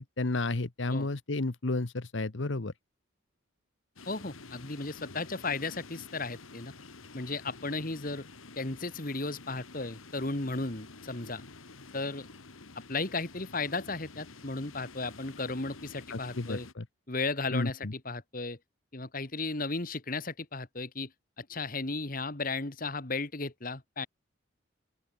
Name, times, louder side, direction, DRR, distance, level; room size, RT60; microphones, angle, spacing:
voice 1, 0.0-2.7 16.1-16.8 17.5-17.9, left 2 dB, 65° left, 1.1 m, -32 dB
sound 1, 4.0-16.7, left 3 dB, 85° left, 2.0 m, -50 dB
voice 2, 4.1-6.7 7.1-8.3 8.6-11.4 11.9-12.3 12.9-16.7 17.1-18.6 18.9-21.1 21.4-24.1, left 3 dB, 45° left, 1.7 m, -35 dB
open air
head